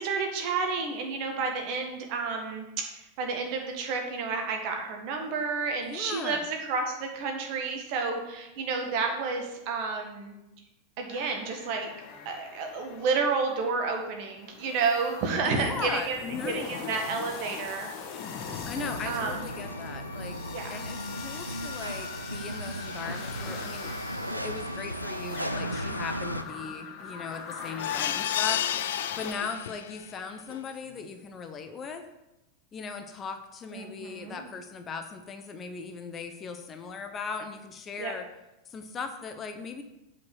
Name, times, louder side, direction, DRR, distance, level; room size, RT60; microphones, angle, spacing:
voice 1, 0.0-2.6 3.0-10.3 11.0-11.9 12.3-16.2 16.4-17.9 19.1-19.5 20.5-20.8 29.3-29.4 33.7-34.4 38.0-38.1, right 4 dB, 45° right, 3 dB, 1.7 m, -30 dB
voice 2, 5.8-6.4 15.4-16.9 18.7-20.4 20.7-23.9 24.3-32.0 32.7-38.3 38.7-39.8, left 5 dB, 25° left, 7 dB, 0.8 m, -38 dB
sound 1, 11.1-29.3, left 6 dB, 40° left, 1.2 m, -41 dB
sound 2, 18.7-26.4, equal, 90° right, 0.4 m, -36 dB
sound 3, 27.8-30.0 30.5-30.6 31.0-31.1, left 11 dB, 60° left, 0.3 m, -31 dB
8.2 x 5.3 x 6.5 m, 0.95 s
figure-of-eight pair, 90°, 0 cm